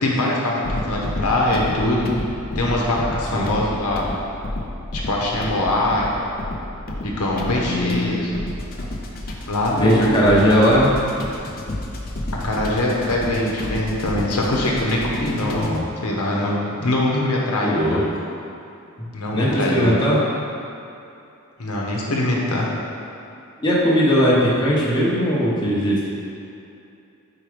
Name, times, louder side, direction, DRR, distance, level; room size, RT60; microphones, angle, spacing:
voice 1, 0.0-2.1 2.5-4.1 4.9-6.1 7.2-8.3 9.5-10.4 12.4-15.7 16.0-18.0 19.1-19.9 21.6-22.7, left 1 dB, 85° left, -3 dB, 1.0 m, -22 dB
sound 1, 0.6-15.9, left 1 dB, 40° left, 0.6 m, -31 dB
voice 2, 7.6-8.3 9.8-11.0 15.4-15.8 17.6-18.0 19.3-20.2 23.6-26.1, equal, 20° left, -6 dB, 0.9 m, -19 dB
4.7 x 4.5 x 5.0 m, 2.7 s
head